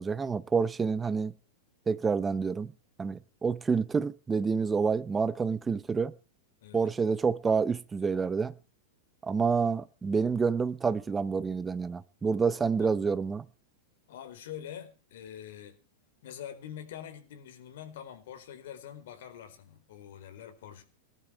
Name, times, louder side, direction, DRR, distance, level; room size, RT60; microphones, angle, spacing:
voice 1, 0.0-1.3 1.9-2.7 3.0-6.1 6.7-8.5 9.2-13.4, right 5 dB, 10° right, 0.7 m, -28 dB
voice 2, 12.8-13.1 14.1-15.8 16.2-20.8, left 10 dB, 65° left, 4.4 m, -45 dB
19.0 x 12.5 x 4.6 m
supercardioid pair, 165°, 0 cm